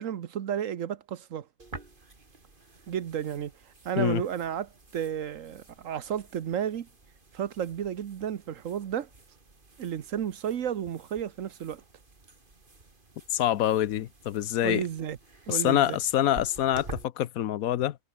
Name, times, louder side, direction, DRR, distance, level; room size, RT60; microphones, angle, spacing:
voice 1, 0.0-1.5 2.9-3.5 3.8-6.9 7.3-9.1 9.8-11.8 14.6-15.2 15.5-16.0, right 9 dB, 70° right, 1.3 m, -32 dB
sound 1, 1.6-17.0, right 3 dB, 35° right, 2.7 m, -50 dB
voice 2, 13.3-14.8 15.5-18.0, left 12 dB, 90° left, 1.2 m, -26 dB
omnidirectional pair, 1.4 m